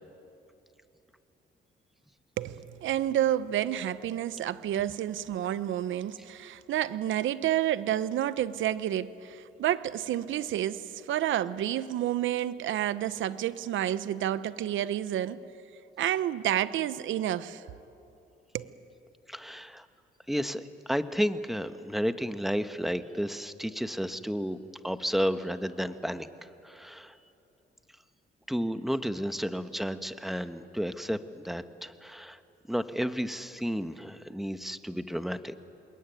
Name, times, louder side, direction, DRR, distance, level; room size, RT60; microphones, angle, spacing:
voice 1, 2.4-15.4 16.0-17.6 18.5-18.7, right 12 dB, 75° right, 0.9 m, -30 dB
voice 2, 19.3-19.8 20.3-24.6 24.8-26.3 26.6-27.1 28.5-32.4 32.7-35.6, equal, ahead, 1.2 m, -32 dB
27.5 x 22.0 x 9.3 m
cardioid pair, 90°, 20 cm